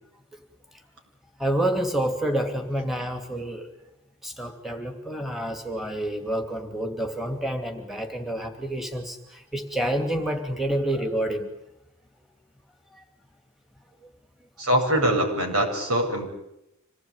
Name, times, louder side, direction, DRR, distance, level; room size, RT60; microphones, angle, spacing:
voice 1, 1.4-3.7 4.2-11.5 12.9-13.0 14.0-14.1, right 1 dB, ahead, 5 dB, 2.6 m, -28 dB
voice 2, 14.6-16.3, right 1 dB, 85° right, 3 dB, 7.7 m, -23 dB
26.5 x 19.5 x 9.7 m, 0.84 s
head